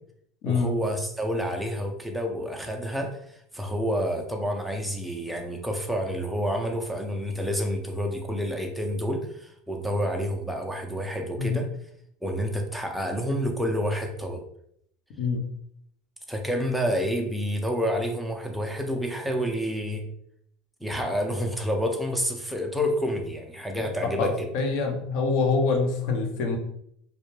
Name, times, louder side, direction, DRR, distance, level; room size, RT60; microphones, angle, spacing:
voice 1, 0.5-11.7 12.2-14.4 16.3-20.1 20.8-24.5, equal, ahead, 2 dB, 0.4 m, -29 dB
voice 2, 23.8-26.6, left 4 dB, 60° left, 3 dB, 0.6 m, -26 dB
2.2 x 2.1 x 3.0 m, 0.71 s
supercardioid pair, 130°, 0 cm